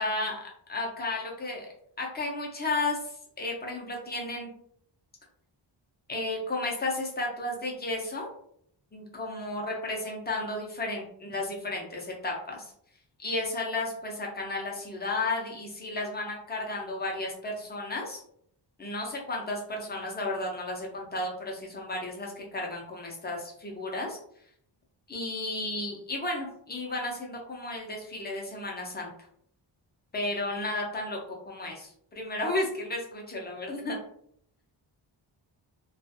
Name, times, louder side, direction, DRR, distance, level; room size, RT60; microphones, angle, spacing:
voice 1, 0.0-1.7 2.0-4.5 6.1-8.3 8.9-12.7 13.2-18.2 18.8-24.2 25.1-29.1 30.1-34.0, left 2 dB, 20° left, -1 dB, 0.6 m, -33 dB
2.4 x 2.4 x 2.6 m, 0.67 s
wide cardioid pair, 135°, 48 cm